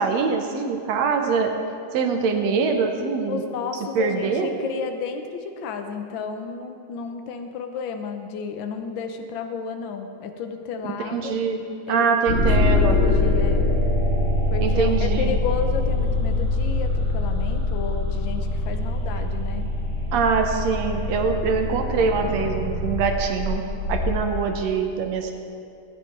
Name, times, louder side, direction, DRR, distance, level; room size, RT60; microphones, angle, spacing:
voice 1, 0.0-1.5 1.9-3.4 4.0-4.5 11.1-11.6 11.9-13.0 14.6-15.4 20.1-23.6 23.9-25.3, right 5 dB, 70° right, 4 dB, 2.1 m, -23 dB
voice 2, 3.3-11.4 11.9-12.1 12.7-13.7 14.5-19.7, left 5 dB, 70° left, 6 dB, 1.2 m, -32 dB
sound 1, 12.3-24.2, left 2 dB, 40° left, 4.4 m, -23 dB
20.5 x 9.2 x 4.7 m, 2.5 s
omnidirectional pair, 3.3 m